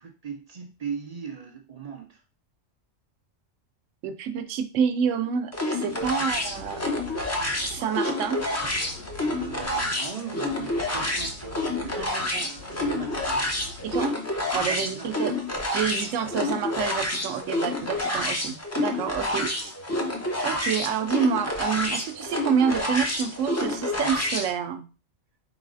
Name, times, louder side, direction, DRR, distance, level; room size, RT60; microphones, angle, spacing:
voice 1, 0.0-2.2 6.0-6.1 9.2-12.1 12.4-13.5 14.4-15.1, right 6 dB, 65° right, 3 dB, 0.4 m, -39 dB
voice 2, 4.0-6.8 7.6-8.4 12.0-12.5 13.8-14.1 14.5-15.4 15.7-19.5 20.4-24.9, right 7 dB, 80° right, 9 dB, 0.9 m, -28 dB
sound 1, 5.5-24.5, left 1 dB, 25° left, 0.3 m, -29 dB
sound 2, 6.3-8.0 8.4-10.1 10.5-12.2 12.6-14.3, left 3 dB, 55° left, 0.8 m, -44 dB
4.0 x 3.9 x 2.5 m, 0.34 s
omnidirectional pair, 1.3 m